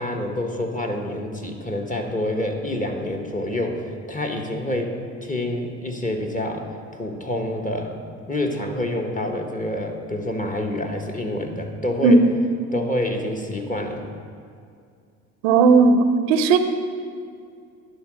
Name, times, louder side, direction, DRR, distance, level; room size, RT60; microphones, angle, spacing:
voice 1, 0.0-5.0 5.2-8.0 8.3-12.2 12.7-14.0, left 1 dB, 20° left, 2 dB, 1.3 m, -27 dB
voice 2, 15.4-16.6, right 4 dB, 80° right, 8 dB, 0.7 m, -15 dB
10.5 x 4.0 x 6.2 m, 2.3 s
supercardioid pair, 70°, 36 cm